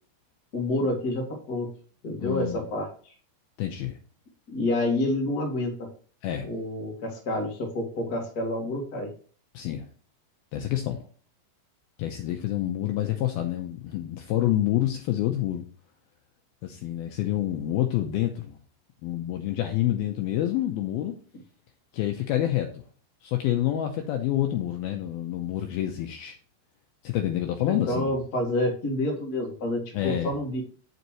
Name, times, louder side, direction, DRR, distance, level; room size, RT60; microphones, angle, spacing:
voice 1, 0.5-1.7 2.0-2.9 4.5-5.9 6.5-9.1 27.6-30.6, left 1 dB, 40° left, 1 dB, 1.4 m, -28 dB
voice 2, 2.2-2.6 3.6-4.0 6.2-6.5 9.5-9.9 10.5-11.0 12.0-15.6 16.6-18.6 19.0-21.2 21.9-22.8 23.2-26.4 27.0-28.2 29.9-30.3, left 12 dB, 80° left, 4 dB, 2.2 m, -27 dB
8.2 x 7.9 x 3.0 m, 0.43 s
omnidirectional pair, 5.1 m